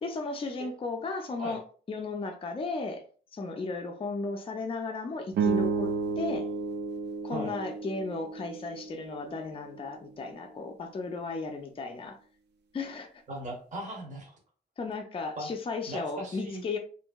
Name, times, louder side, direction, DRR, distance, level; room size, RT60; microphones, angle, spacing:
voice 1, 0.0-1.6 1.9-3.0 3.3-6.5 7.2-12.2 12.7-13.1 14.8-16.8, left 3 dB, 35° left, 0.4 m, -35 dB
sound 1, 5.3-9.8, right 4 dB, 85° right, 0.4 m, -32 dB
voice 2, 13.3-14.3 15.4-15.5 15.9-16.6, right 1 dB, 45° right, 0.8 m, -38 dB
2.8 x 2.6 x 2.2 m
wide cardioid pair, 155°, 17 cm